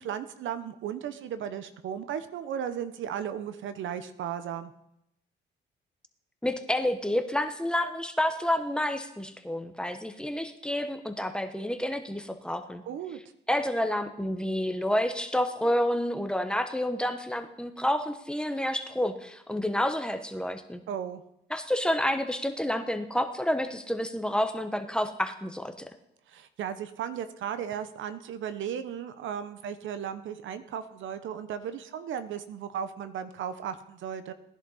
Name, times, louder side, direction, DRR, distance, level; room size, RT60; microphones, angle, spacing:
voice 1, 0.0-4.7 12.9-13.2 20.9-21.2 26.3-34.3, right 9 dB, 75° right, 11 dB, 0.9 m, -35 dB
voice 2, 6.4-12.8 13.5-20.8 21.5-25.9, left 1 dB, 5° left, 6 dB, 1.2 m, -29 dB
18.5 x 10.5 x 4.2 m, 0.81 s
cardioid pair, 90°, 20 cm